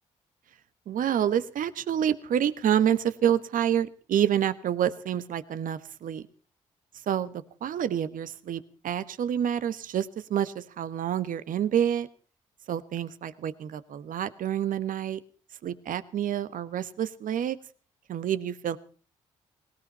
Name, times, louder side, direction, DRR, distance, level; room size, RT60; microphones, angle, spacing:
voice 1, 0.9-6.3 7.1-12.1 12.7-15.2 15.6-17.6 18.1-18.8, right 9 dB, 65° right, 15 dB, 1.2 m, -28 dB
19.0 x 18.0 x 4.2 m, 0.39 s
hypercardioid pair, 50°, 15 cm